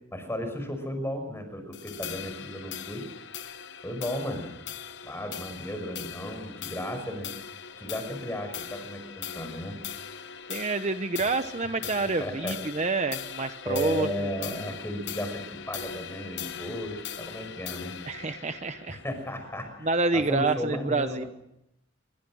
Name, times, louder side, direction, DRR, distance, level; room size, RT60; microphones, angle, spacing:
voice 1, 0.1-3.1 3.8-4.5 5.0-7.3 7.8-9.8 12.0-12.6 13.6-17.9 18.9-19.9 20.1-21.3, left 1 dB, 15° left, 7 dB, 6.1 m, -34 dB
sound 1, 1.7-20.3, left 8 dB, 65° left, 1.1 m, -40 dB
voice 2, 10.5-14.5 18.1-19.0 19.8-21.2, right 3 dB, 35° right, 9 dB, 1.0 m, -28 dB
27.5 x 23.5 x 6.4 m, 0.80 s
head